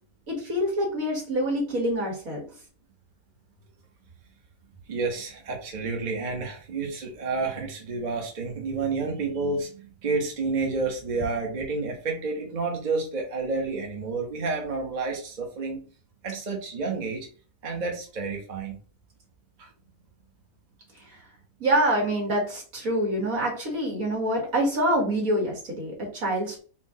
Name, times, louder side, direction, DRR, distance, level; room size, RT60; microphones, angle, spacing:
voice 1, 0.3-2.4 21.1-21.2 21.6-26.6, right 1 dB, 70° right, -2 dB, 2.3 m, -26 dB
voice 2, 4.9-15.8 16.2-17.3 17.6-18.8 19.6-19.7, right 3 dB, 35° right, 1 dB, 1.0 m, -30 dB
4.6 x 2.5 x 4.2 m, 0.39 s
omnidirectional pair, 1.5 m